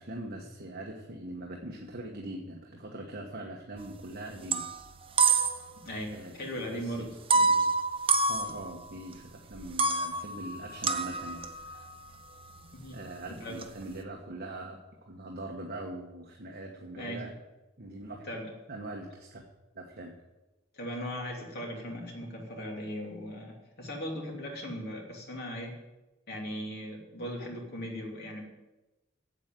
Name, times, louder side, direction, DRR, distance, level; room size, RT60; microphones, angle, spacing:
voice 1, 0.0-4.7 6.1-6.9 7.3-7.7 8.3-11.9 12.9-17.3 17.8-18.2 18.7-19.4 19.7-20.1, right 1 dB, 50° right, 0 dB, 1.3 m, -42 dB
sound 1, 3.8-4.1 4.4-5.8 6.1-6.2 7.3-9.1 9.5-13.9, right 4 dB, 30° right, 0.8 m, -28 dB
voice 2, 5.8-7.2 12.7-13.0 13.3-13.6 17.0-17.3 18.2-18.5 20.7-25.8 26.3-28.4, equal, 55° left, -1 dB, 3.0 m, -38 dB
8.3 x 8.1 x 9.0 m, 1.0 s
head